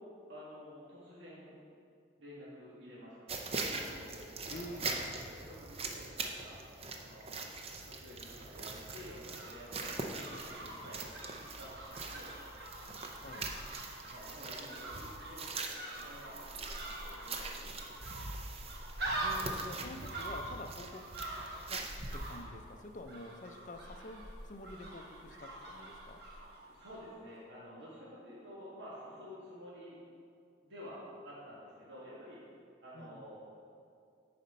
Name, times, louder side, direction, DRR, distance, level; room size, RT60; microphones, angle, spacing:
voice 1, 0.0-1.5 2.2-6.6 6.9-7.4 7.8-11.0 11.6-12.4 14.0-18.1 26.7-30.0 30.6-32.4 32.8-33.4, equal, 75° right, -8 dB, 1.6 m, -51 dB
sound 1, 3.3-22.4, right 3 dB, 30° right, 0.5 m, -43 dB
voice 2, 4.5-4.9 13.2-13.5 19.2-21.2 21.7-26.2 32.9-33.2, left 2 dB, 40° left, 6 dB, 0.5 m, -48 dB
sound 2, 8.9-27.0 27.3-27.4, right 1 dB, 60° right, 1.2 m, -44 dB
9.1 x 4.3 x 5.3 m, 2.4 s
head